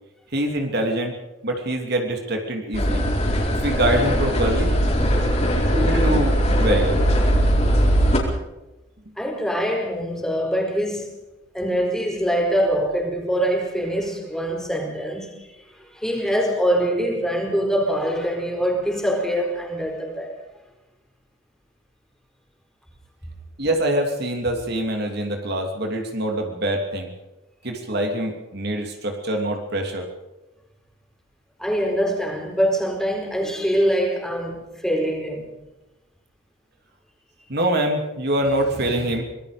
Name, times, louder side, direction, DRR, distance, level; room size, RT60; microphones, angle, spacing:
voice 1, 0.3-1.2 1.4-3.0 3.5-4.7 5.7-7.1 23.6-27.1 27.6-30.1 37.5-39.2, right 1 dB, 55° right, 2.9 m, -24 dB
sound 1, 2.7-8.2, equal, 35° left, 4.5 m, -20 dB
voice 2, 5.0-5.4 9.2-11.1 11.5-15.5 15.8-20.3 31.6-35.5, equal, 5° left, 4.4 m, -24 dB
25.0 x 20.5 x 5.2 m
head